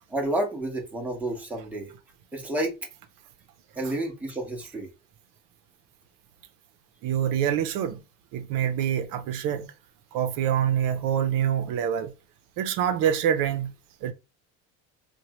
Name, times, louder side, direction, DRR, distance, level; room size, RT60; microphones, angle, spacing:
voice 1, 0.1-1.9 2.3-2.8 3.8-4.9, right 1 dB, 5° right, 0.8 m, -30 dB
voice 2, 7.0-8.0 8.3-9.7 10.1-12.1 12.6-13.7 14.0-14.1, right 9 dB, 75° right, 0.6 m, -25 dB
3.0 x 2.2 x 2.9 m
cardioid pair, 130°, 34 cm